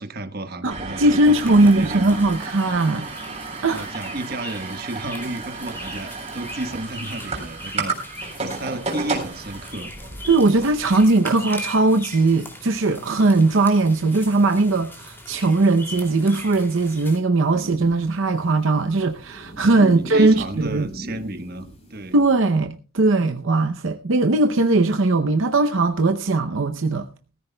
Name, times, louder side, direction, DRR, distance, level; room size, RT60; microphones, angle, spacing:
voice 1, 0.0-2.1 3.7-7.9 8.4-9.9 19.6-22.1, right 2 dB, 45° right, 1.2 m, -32 dB
voice 2, 0.6-3.1 3.6-3.9 10.3-20.9 22.1-27.1, right 2 dB, 65° right, 0.7 m, -19 dB
sound 1, 0.7-11.0, right 3 dB, 30° right, 3.8 m, -33 dB
sound 2, 1.2-17.2, left 1 dB, 10° left, 2.6 m, -40 dB
sound 3, 17.3-22.5, equal, 30° left, 4.1 m, -40 dB
20.0 x 14.0 x 2.2 m
head